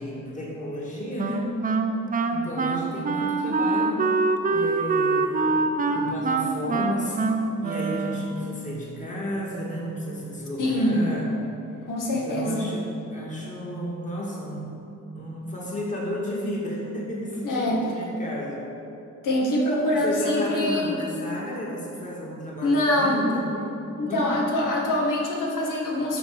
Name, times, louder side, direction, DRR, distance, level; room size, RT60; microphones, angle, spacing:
voice 1, 0.0-1.6 2.3-4.1 4.5-7.2 7.6-11.4 12.1-14.7 15.1-18.7 20.0-23.7 24.0-24.5, equal, 25° left, -4 dB, 2.1 m, -33 dB
Wind instrument woodwind instrument, 1.2-8.6, right 3 dB, 25° right, 0.5 m, -25 dB
voice 2, 10.6-11.0 11.9-12.7 17.4-17.8 19.2-21.0 22.6-23.4 24.0-26.2, left 1 dB, 80° left, -2 dB, 1.9 m, -24 dB
12.0 x 4.6 x 6.7 m, 2.7 s
wide cardioid pair, 160°, 31 cm